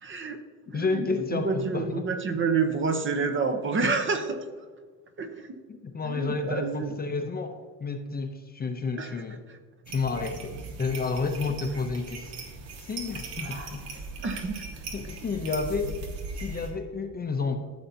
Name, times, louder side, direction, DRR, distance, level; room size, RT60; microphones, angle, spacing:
voice 1, 0.0-0.4 0.7-4.5 5.2-5.5 6.0-6.9 9.0-9.2 9.5-9.6 14.2-14.6, right 4 dB, 30° right, 7 dB, 0.8 m, -29 dB
voice 2, 0.7-2.1 2.3-2.4 5.7-9.4 9.9-12.4 12.8-13.9 14.9-16.0 16.3-17.6, left 4 dB, 25° left, 6 dB, 0.6 m, -31 dB
sound 1, 9.8-16.7, right 3 dB, 80° right, 2.1 m, -39 dB
14.0 x 7.0 x 2.8 m, 1.5 s
cardioid pair, 135°, 40 cm